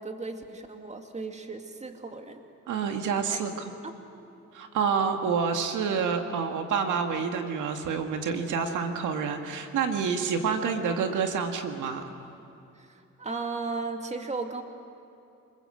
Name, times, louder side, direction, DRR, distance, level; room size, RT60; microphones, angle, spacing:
voice 1, 0.0-2.4 3.3-3.4 3.8-3.9 12.8-14.6, right 3 dB, 25° right, 5 dB, 2.3 m, -36 dB
voice 2, 2.7-3.7 4.5-12.0, right 6 dB, 80° right, 5 dB, 2.0 m, -28 dB
28.5 x 20.5 x 7.9 m, 2.7 s
cardioid pair, 90°, 30 cm